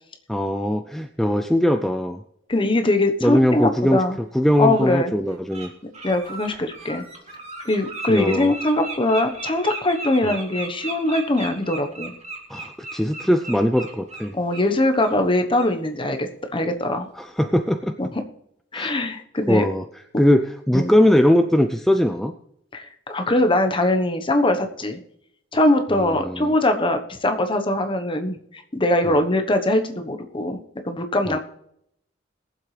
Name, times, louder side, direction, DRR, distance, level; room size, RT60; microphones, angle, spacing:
voice 1, 0.3-2.2 3.2-4.0 4.3-5.7 8.1-8.5 10.2-10.4 12.5-14.3 17.2-17.9 18.7-19.0 19.5-19.8 20.2-22.3 25.9-26.5 29.1-29.2 31.3-31.4, equal, ahead, 7 dB, 0.4 m, -20 dB
voice 2, 2.5-4.1 4.6-5.1 6.0-7.0 7.6-12.1 14.3-17.1 18.0-18.1 18.7-19.6 20.7-20.9 22.7-25.0 25.5-30.6 30.8-31.4, left 1 dB, 25° left, 6 dB, 1.1 m, -22 dB
Bird, 3.9-4.0 4.7-4.8 5.3-5.7 5.9-14.7 15.0-15.2 15.6-15.7, right 3 dB, 35° right, 2.4 m, -36 dB
21.5 x 7.6 x 3.3 m, 0.74 s
head